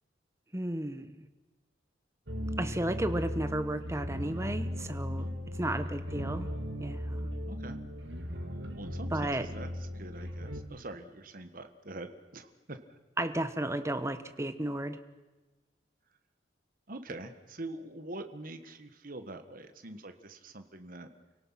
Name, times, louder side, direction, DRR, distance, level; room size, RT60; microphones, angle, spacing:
voice 1, 0.5-1.1 2.6-5.3 5.5-6.5 6.8-7.3 9.1-9.5 13.2-15.0, right 1 dB, 15° right, 10 dB, 1.1 m, -33 dB
sound 1, 2.3-10.6, equal, 75° right, 2.6 m, -37 dB
voice 2, 7.4-7.8 8.8-12.8 16.9-21.1, right 2 dB, 50° right, 7 dB, 1.6 m, -44 dB
30.0 x 18.0 x 5.8 m, 1.2 s
head